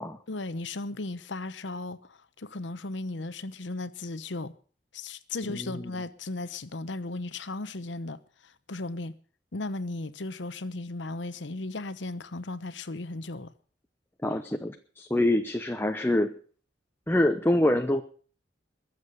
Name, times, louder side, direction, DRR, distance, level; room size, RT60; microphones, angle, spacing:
voice 1, 0.3-4.5 4.9-9.2 9.5-13.5, left 2 dB, 75° left, 1.0 m, -36 dB
voice 2, 5.5-5.9 14.2-16.3 17.1-18.0, left 1 dB, 10° left, 0.8 m, -25 dB
21.5 x 7.6 x 6.6 m
head